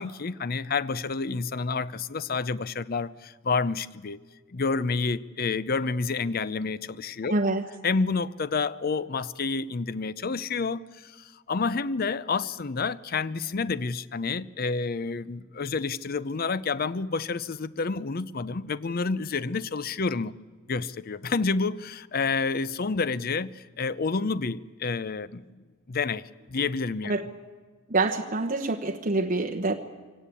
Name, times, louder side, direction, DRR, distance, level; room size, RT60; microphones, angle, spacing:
voice 1, 0.0-4.2 4.5-7.4 7.8-20.3 20.7-27.1, left 4 dB, 45° left, 0.6 m, -29 dB
voice 2, 7.3-7.6 27.0-27.2 27.9-29.7, right 2 dB, 40° right, 1.1 m, -26 dB
23.5 x 17.5 x 8.4 m
head